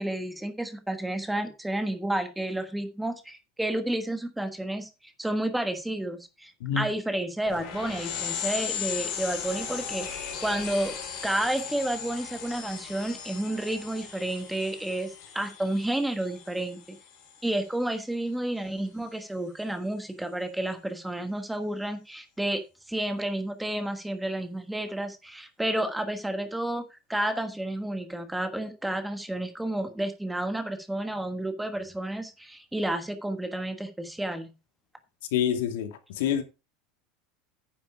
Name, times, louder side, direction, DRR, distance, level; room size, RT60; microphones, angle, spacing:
voice 1, 0.0-4.9 5.2-10.9 11.2-17.0 17.4-22.6 22.9-34.5, right 1 dB, 5° right, 1.4 m, -31 dB
sound 1, 7.5-17.6, left 8 dB, 45° left, 5.8 m, -37 dB
voice 2, 35.3-36.4, left 9 dB, 85° left, 2.2 m, -27 dB
9.8 x 7.7 x 4.8 m
supercardioid pair, 170°, 0 cm